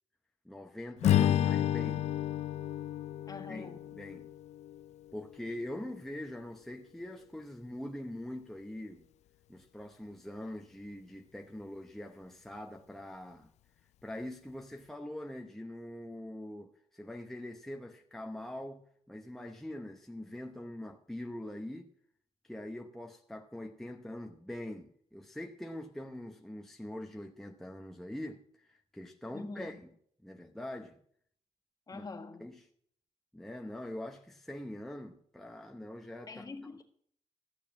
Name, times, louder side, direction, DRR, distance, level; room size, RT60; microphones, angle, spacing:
voice 1, 0.4-2.1 3.5-4.3 5.1-9.0 9.5-13.5 14.0-21.9 22.4-29.8 30.2-31.0 31.9-32.0 32.4-32.6 33.3-36.5, left 1 dB, 5° left, 0.8 m, -43 dB
Strum, 1.0-5.4, left 11 dB, 70° left, 0.4 m, -31 dB
voice 2, 3.3-3.8 29.3-29.8 31.9-32.5 36.3-36.8, left 3 dB, 30° left, 1.7 m, -44 dB
15.0 x 6.6 x 7.4 m
cardioid pair, 105°, 12 cm